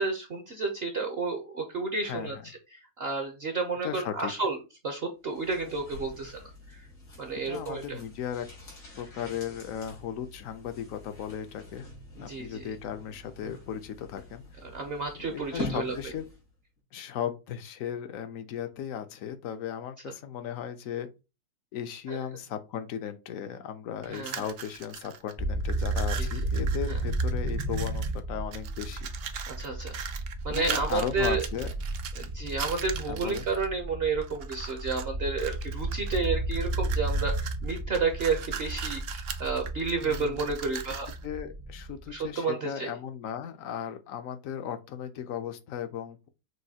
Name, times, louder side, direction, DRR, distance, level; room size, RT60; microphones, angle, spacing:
voice 1, 0.0-2.4 2.7-4.6 4.8-6.8 7.2-8.0 12.3-12.6 14.6-15.9 22.1-22.2 24.1-24.5 26.2-26.3 29.5-30.0 30.4-31.4 32.2-41.1 42.1-42.9, right 4 dB, 50° right, 0.8 m, -31 dB
voice 2, 2.0-2.4 3.8-4.3 7.5-8.5 8.9-11.9 12.2-14.6 15.2-16.2 16.9-21.1 21.7-29.1 30.5-31.7 33.1-33.5 40.0-40.4 41.2-46.3, left 9 dB, 65° left, 0.9 m, -36 dB
sound 1, 5.3-16.5 16.8-16.9, left 3 dB, 85° left, 3.1 m, -44 dB
sound 2, 24.0-25.3 25.6-28.2 28.5-33.7 34.2-35.1 35.4-41.2, right 8 dB, 85° right, 0.5 m, -40 dB
sound 3, 25.4-42.2, right 2 dB, 30° right, 0.3 m, -33 dB
6.3 x 2.6 x 2.8 m
omnidirectional pair, 1.7 m